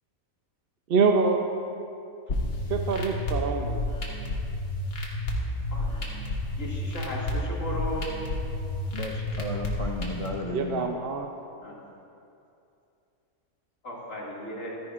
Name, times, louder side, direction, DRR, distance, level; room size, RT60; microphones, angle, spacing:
voice 1, 0.9-1.4 2.7-4.0 10.5-11.3, right 4 dB, 55° right, 4 dB, 0.7 m, -25 dB
sound 1, 2.3-10.3, left 1 dB, 90° left, 1.9 m, -31 dB
voice 2, 5.7-6.2 6.6-8.3 11.6-11.8 13.8-14.8, equal, 65° left, -5 dB, 2.6 m, -36 dB
voice 3, 8.9-11.0, left 1 dB, 40° left, 0 dB, 0.5 m, -34 dB
15.0 x 14.0 x 2.5 m, 2.7 s
omnidirectional pair, 1.5 m